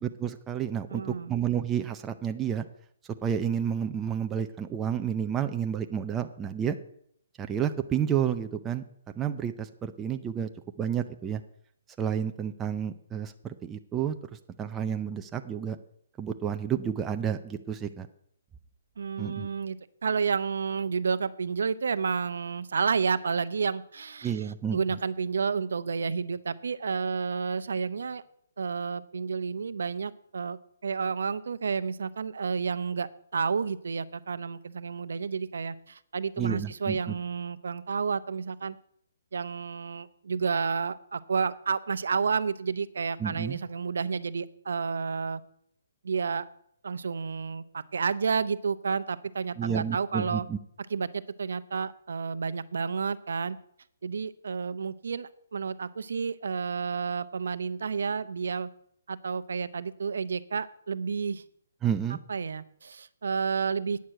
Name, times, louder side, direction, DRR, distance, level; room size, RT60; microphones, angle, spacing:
voice 1, 0.0-2.7 3.2-6.8 7.4-8.8 9.2-10.5 10.8-11.4 12.0-14.1 14.6-15.8 16.2-18.1 19.2-19.5 24.2-24.8 36.4-37.2 43.2-43.6 49.6-50.6 61.8-62.2, right 8 dB, 10° right, 6 dB, 0.4 m, -30 dB
voice 2, 0.9-1.3 19.0-24.4 24.7-28.2 28.6-30.6 30.8-38.8 39.3-45.4 46.0-46.4 46.8-50.4 50.9-53.6 54.0-58.7 59.1-61.4 62.3-64.0, right 5 dB, 75° right, 14 dB, 0.7 m, -30 dB
9.3 x 6.5 x 8.7 m, 0.67 s
hypercardioid pair, 170°, 0 cm